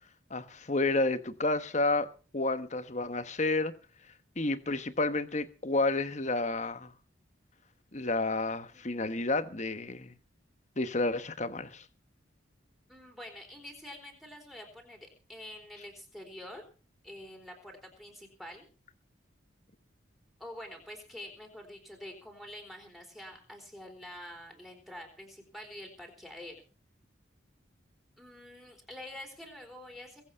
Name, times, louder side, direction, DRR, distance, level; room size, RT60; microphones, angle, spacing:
voice 1, 0.3-3.7 4.4-6.9 7.9-10.1 10.8-11.8, left 2 dB, 40° left, 1.2 m, -30 dB
voice 2, 12.9-16.6 17.0-18.7 20.4-26.6 28.2-30.2, left 1 dB, ahead, 4.0 m, -47 dB
22.0 x 8.2 x 5.7 m
head